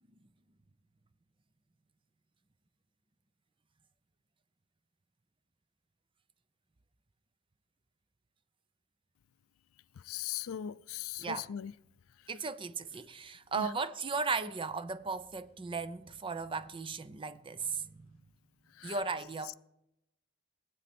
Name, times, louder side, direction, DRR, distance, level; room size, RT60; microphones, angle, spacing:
voice 1, 10.1-11.7 13.6-13.7 18.8-19.0, left 10 dB, 75° left, 0.4 m, -39 dB
voice 2, 11.2-11.5 12.3-18.1 18.8-19.5, right 4 dB, 25° right, 0.5 m, -36 dB
21.5 x 8.3 x 4.3 m
head